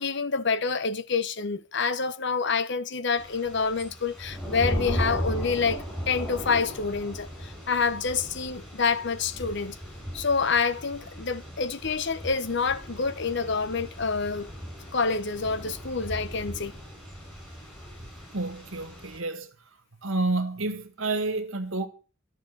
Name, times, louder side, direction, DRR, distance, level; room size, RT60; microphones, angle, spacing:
voice 1, 0.0-9.8 10.1-14.5 14.9-16.7, left 5 dB, 60° left, 1.0 m, -27 dB
Thunder / Rain, 3.2-19.2, equal, 5° left, 7.3 m, -37 dB
voice 2, 18.3-19.5 20.0-21.9, right 2 dB, 80° right, 1.9 m, -29 dB
13.0 x 7.3 x 8.3 m
head